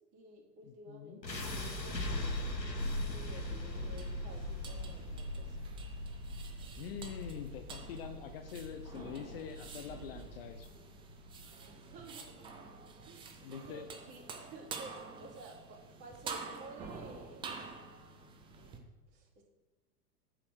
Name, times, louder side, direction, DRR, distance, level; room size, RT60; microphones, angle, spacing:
voice 1, 0.1-2.6 3.1-5.8 11.7-12.8 13.0-14.2 14.5-14.9 15.2-17.7 18.5-18.7 19.1-19.4, right 2 dB, 40° right, -3 dB, 3.0 m, -53 dB
voice 2, 0.7-1.2 6.8-10.7 13.4-13.9, left 8 dB, 35° left, 8 dB, 0.5 m, -45 dB
sound 1, 1.2-13.3, left 1 dB, 90° left, 1.1 m, -40 dB
sound 2, 3.1-18.8, right 5 dB, 10° right, 0.5 m, -49 dB
8.2 x 4.8 x 6.2 m, 1.1 s
figure-of-eight pair, 95°, 50 cm